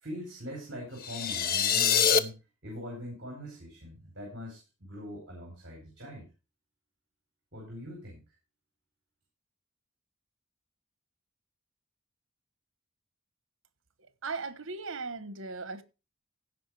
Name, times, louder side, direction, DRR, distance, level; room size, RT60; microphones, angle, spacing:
voice 1, 0.0-6.3 7.5-8.2, left 1 dB, 55° right, 4.3 m, -42 dB
sound 1, 1.0-2.2, left 7 dB, 45° left, 0.7 m, -25 dB
voice 2, 14.2-15.8, right 4 dB, 85° right, 1.2 m, -37 dB
16.0 x 5.3 x 4.8 m
head